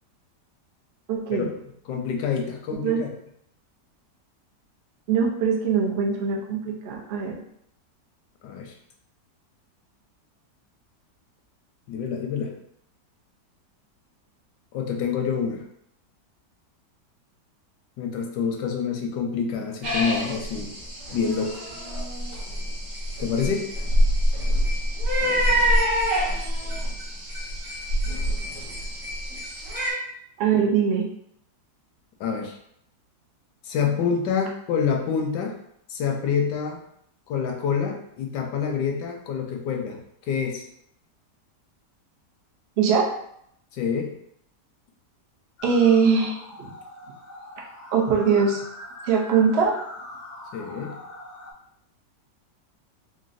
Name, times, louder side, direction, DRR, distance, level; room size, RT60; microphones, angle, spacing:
voice 1, 1.1-1.5 2.8-3.0 5.1-7.4 30.4-31.1 42.8-43.1 45.6-46.7 47.9-48.6 49.1-49.8, right 6 dB, 80° right, -1 dB, 0.5 m, -22 dB
voice 2, 1.9-3.1 8.4-8.7 11.9-12.6 14.7-15.6 18.0-20.7 21.1-21.6 23.2-23.7 32.2-32.6 33.6-35.5 35.9-36.8 37.3-40.6 43.7-44.1 50.5-50.9, left 6 dB, 80° left, 2 dB, 1.2 m, -27 dB
sound 1, 19.8-29.9, equal, 55° right, 1.4 m, -25 dB
sound 2, 45.6-51.5, left 2 dB, 65° left, 0.8 m, -42 dB
3.9 x 2.1 x 2.5 m, 0.72 s
omnidirectional pair, 1.9 m